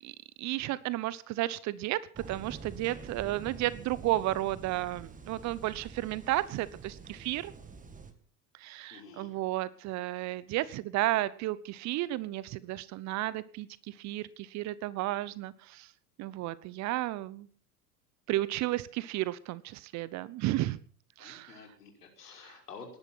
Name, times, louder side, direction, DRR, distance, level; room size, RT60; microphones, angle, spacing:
voice 1, 0.0-7.5 8.6-15.9 16.2-17.5 18.3-20.8 21.2-21.6 22.4-22.5, right 16 dB, 35° right, 19 dB, 0.9 m, -33 dB
sound 1, 2.1-8.1, right 5 dB, 15° right, 2.3 m, -47 dB
voice 2, 8.9-9.3 21.2-23.0, left 5 dB, 75° left, 2 dB, 5.5 m, -49 dB
18.5 x 11.5 x 5.9 m, 0.43 s
figure-of-eight pair, 85°, 47 cm